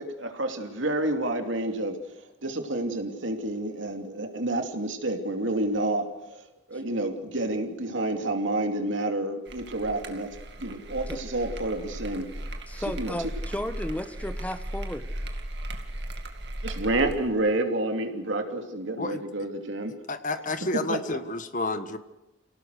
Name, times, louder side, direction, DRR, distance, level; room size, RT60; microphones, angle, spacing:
voice 1, 0.0-2.0 2.4-6.1 6.7-10.3 10.6-12.3 13.0-13.1 16.6-19.9 20.9-21.0, right 2 dB, 80° right, 2.7 m, -29 dB
sound 1, 9.5-17.3, right 1 dB, 60° right, 2.4 m, -37 dB
voice 2, 12.7-15.1, left 1 dB, 5° left, 1.0 m, -34 dB
voice 3, 20.1-22.0, left 2 dB, 40° left, 1.4 m, -30 dB
27.0 x 18.0 x 6.6 m
head